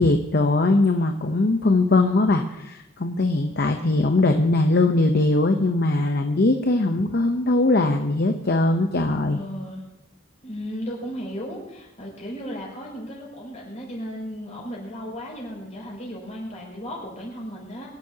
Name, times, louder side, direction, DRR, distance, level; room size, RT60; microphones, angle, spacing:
voice 1, 0.0-9.4, left 2 dB, 55° left, 6 dB, 0.8 m, -20 dB
voice 2, 9.3-9.9 10.4-17.9, equal, 40° left, -3 dB, 6.3 m, -35 dB
25.0 x 11.5 x 2.9 m, 0.93 s
head